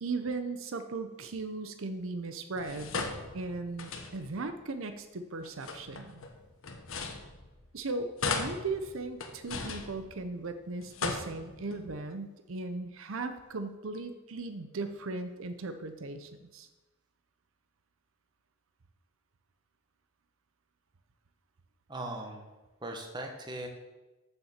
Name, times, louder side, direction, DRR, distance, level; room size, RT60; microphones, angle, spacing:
voice 1, 0.0-2.9 3.3-6.2 7.7-16.7, right 3 dB, 80° right, 8 dB, 0.7 m, -37 dB
sound 1, 2.6-4.5 5.4-7.8 8.2-10.5 10.8-11.8, left 4 dB, 75° left, 1.2 m, -38 dB
voice 2, 21.9-22.4 22.8-23.7, right 1 dB, 20° right, 3 dB, 1.3 m, -39 dB
7.1 x 6.8 x 7.3 m, 1.1 s
head